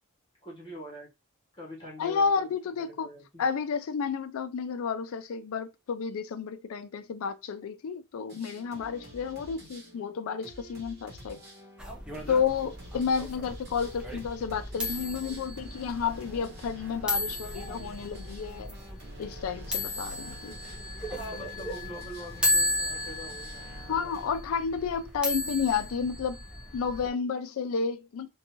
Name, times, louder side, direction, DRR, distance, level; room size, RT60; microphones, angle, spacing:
voice 1, 0.4-1.1 1.5-3.4 12.1-12.3 21.2-23.7, equal, 20° left, 1.0 m, -44 dB
voice 2, 2.0-3.1 3.4-11.4 12.3-18.7 19.2-20.6 23.9-26.4 26.7-28.3, left 6 dB, 85° left, 0.4 m, -31 dB
sound 1, 8.3-24.3, equal, 50° right, 1.0 m, -48 dB
sound 2, 11.8-27.1, left 1 dB, 5° right, 0.5 m, -35 dB
2.6 x 2.2 x 2.9 m
head